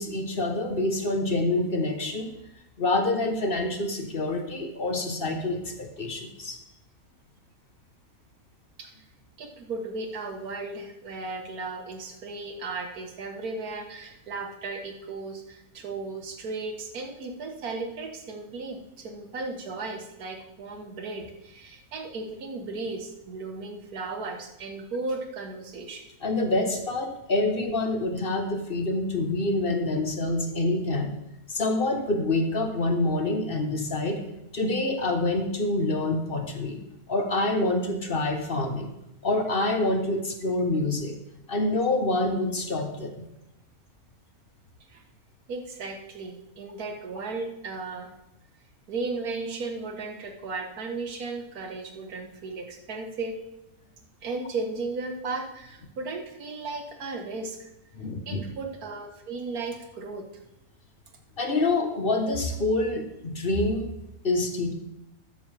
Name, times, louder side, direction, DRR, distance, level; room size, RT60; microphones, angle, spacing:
voice 1, 0.0-2.3 2.8-6.6 26.2-31.2 31.5-34.2 34.5-36.8 37.1-38.9 39.2-41.1 41.5-43.2 57.9-58.4 61.4-63.9 64.2-64.7, left 2 dB, 40° left, 5 dB, 1.2 m, -26 dB
voice 2, 9.4-26.0 44.9-45.0 45.5-48.1 48.9-53.4 54.2-57.7 58.3-60.3, right 3 dB, 90° right, 4 dB, 1.8 m, -35 dB
13.0 x 9.4 x 3.4 m, 0.88 s
omnidirectional pair, 1.5 m